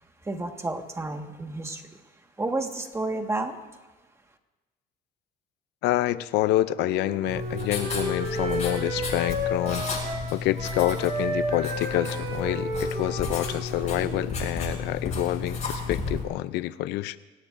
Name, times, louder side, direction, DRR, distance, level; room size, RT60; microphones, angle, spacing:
voice 1, 0.2-1.9 2.4-3.6, right 2 dB, 15° right, 4 dB, 1.7 m, -31 dB
voice 2, 5.8-9.9 10.3-17.2, left 15 dB, 90° left, 15 dB, 0.6 m, -27 dB
Wind instrument woodwind instrument, 6.7-14.4, right 1 dB, 60° right, 4.2 m, -32 dB
Writing, 7.3-16.2, left 4 dB, 40° left, 6.9 m, -33 dB
27.0 x 17.5 x 2.7 m, 1.2 s
cardioid pair, 110°, 17 cm